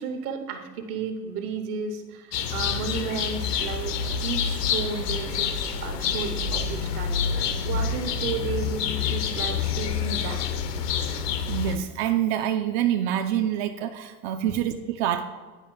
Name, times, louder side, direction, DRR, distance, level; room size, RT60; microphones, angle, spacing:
voice 1, 0.0-5.5 5.8-7.2 7.6-10.6 14.5-14.6, right 5 dB, 65° right, 7 dB, 1.2 m, -33 dB
sound 1, 2.3-11.8, left 6 dB, 80° left, 0.8 m, -27 dB
voice 2, 11.5-15.2, right 10 dB, 45° right, 7 dB, 0.5 m, -26 dB
10.5 x 4.5 x 3.8 m, 1.4 s
hypercardioid pair, 95°, 48 cm